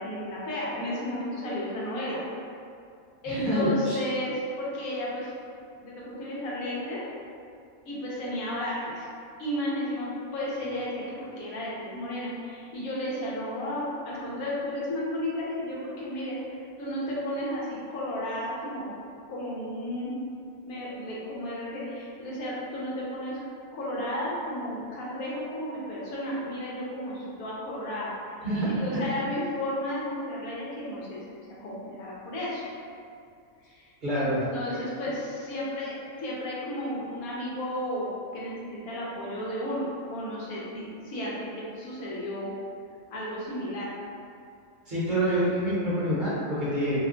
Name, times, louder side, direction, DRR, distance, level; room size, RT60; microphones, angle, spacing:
voice 1, 0.0-2.2 3.2-5.3 5.8-7.1 7.8-9.1 9.4-18.9 19.3-20.1 20.6-23.4 23.7-32.6 33.7-33.9 34.2-42.5 43.1-43.9, left 1 dB, 75° left, -6 dB, 1.2 m, -33 dB
voice 2, 3.3-4.0 28.4-29.1 34.0-34.4 44.9-47.0, equal, 40° right, -10 dB, 0.9 m, -27 dB
2.9 x 2.2 x 3.7 m, 2.3 s
omnidirectional pair, 1.5 m